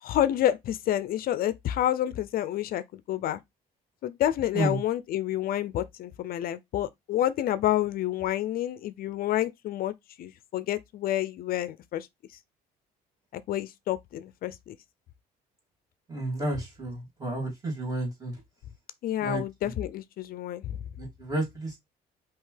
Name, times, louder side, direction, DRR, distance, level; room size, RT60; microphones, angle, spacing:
voice 1, 0.0-3.4 4.0-9.9 10.2-12.1 13.3-14.8 19.0-20.8, left 12 dB, 60° left, 0.4 m, -29 dB
voice 2, 16.1-18.4 19.2-19.7 21.0-21.8, right 2 dB, 20° right, 2.9 m, -31 dB
5.3 x 2.9 x 3.3 m
cardioid pair, 110°, 17 cm